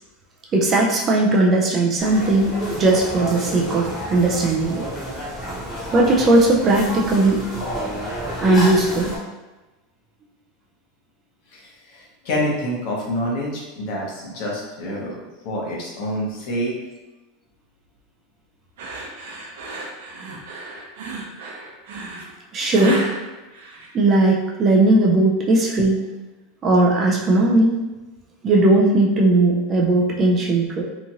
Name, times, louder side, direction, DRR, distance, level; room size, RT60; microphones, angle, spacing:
voice 1, 0.5-4.8 5.9-7.4 8.4-9.1 22.5-23.0 23.9-26.0 26.6-27.8 28.4-30.8, right 2 dB, 20° right, -2 dB, 0.3 m, -18 dB
sound 1, 2.0-9.2, equal, 10° left, 1.0 m, -30 dB
voice 2, 11.5-16.8, equal, 50° left, -3 dB, 0.8 m, -27 dB
Tired Breathing, 18.8-24.3, right 2 dB, 85° right, 0.6 m, -32 dB
2.9 x 2.4 x 2.7 m, 1.1 s
supercardioid pair, 165°, 0 cm